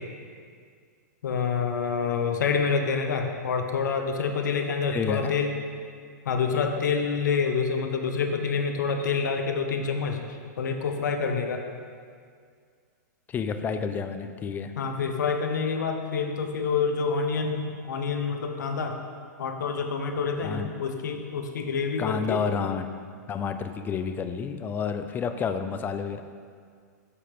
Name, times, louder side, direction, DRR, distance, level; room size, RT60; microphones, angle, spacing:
voice 1, 1.2-5.5 6.3-11.6 14.8-19.0 19.4-22.4, left 5 dB, 75° left, 4 dB, 0.8 m, -27 dB
voice 2, 4.9-5.3 13.3-14.7 20.4-20.7 22.0-22.8 23.3-26.2, left 6 dB, 20° left, 8 dB, 0.3 m, -30 dB
7.0 x 4.3 x 5.0 m, 2.1 s
hypercardioid pair, 125°, 10 cm